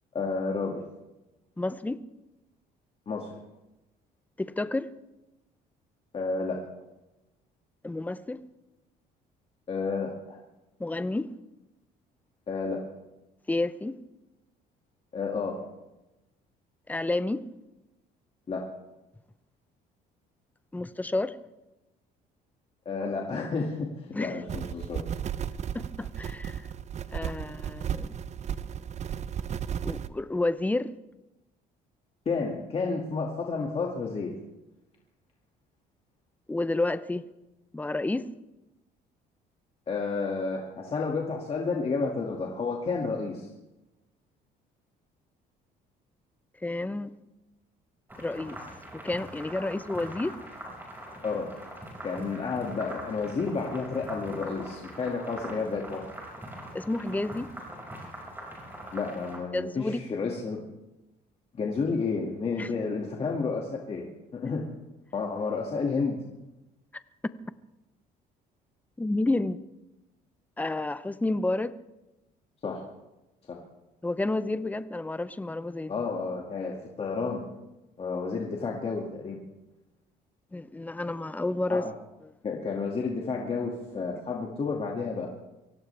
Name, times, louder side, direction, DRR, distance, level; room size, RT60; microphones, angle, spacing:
voice 1, 0.1-0.8 3.1-3.3 6.1-6.6 9.7-10.1 12.5-12.8 15.1-15.6 18.5-18.6 22.9-25.0 32.3-34.3 39.9-43.5 51.2-51.5 52.0-56.0 58.9-60.6 61.5-64.0 64.3-64.7 65.1-66.2 72.6-72.8 73.5-73.6 75.9-77.5 78.0-79.4 81.7-81.9 82.4-85.3, left 4 dB, 35° left, -1 dB, 2.2 m, -31 dB
voice 2, 1.6-2.0 4.4-4.9 7.8-8.4 10.8-11.3 13.5-13.9 16.9-17.4 20.7-21.3 24.1-24.4 25.7-26.7 27.1-28.1 29.8-30.9 36.5-37.2 37.7-38.2 46.6-47.1 48.2-48.6 48.9-50.3 56.7-57.5 59.5-60.0 62.6-62.7 66.9-67.0 69.0-69.6 70.6-71.7 74.0-75.9 80.5-81.8, left 2 dB, 10° left, 14 dB, 0.7 m, -30 dB
sound 1, 24.5-30.1, right 8 dB, 40° right, 0.7 m, -34 dB
sound 2, 48.1-59.4, right 1 dB, 10° right, 5.6 m, -42 dB
24.0 x 17.0 x 3.4 m, 0.99 s
cardioid pair, 110°, 17 cm